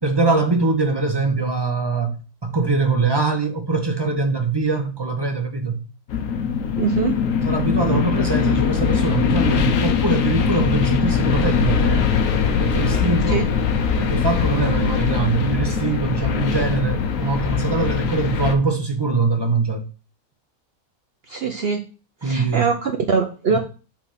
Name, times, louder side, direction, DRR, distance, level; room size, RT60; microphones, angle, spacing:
voice 1, 0.0-5.8 7.5-12.1 12.6-13.4 14.0-19.9 22.2-22.7 23.5-23.6, right 3 dB, 20° right, 0.7 m, -22 dB
sound 1, 6.1-18.5, left 6 dB, 65° left, 1.0 m, -21 dB
voice 2, 6.8-7.2 7.8-8.0 13.3-13.4 21.3-21.8 22.2-23.6, right 5 dB, 55° right, 0.7 m, -22 dB
6.1 x 3.3 x 5.6 m
omnidirectional pair, 1.6 m